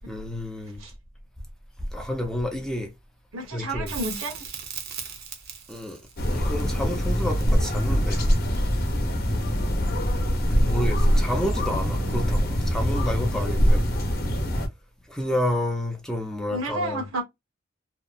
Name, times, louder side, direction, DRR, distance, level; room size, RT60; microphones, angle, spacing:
voice 1, 0.1-0.8 1.9-2.9 3.5-3.9 5.7-6.0 6.3-8.2 10.5-13.8 15.1-17.0, left 1 dB, 5° left, 0.5 m, -30 dB
voice 2, 3.3-4.5 16.5-17.2, right 1 dB, 90° right, 1.1 m, -31 dB
Crackle, 3.9-9.0 11.7-11.8, right 7 dB, 50° right, 0.7 m, -39 dB
sound 1, 6.2-14.7, equal, 50° left, 0.8 m, -23 dB
2.8 x 2.0 x 2.4 m
head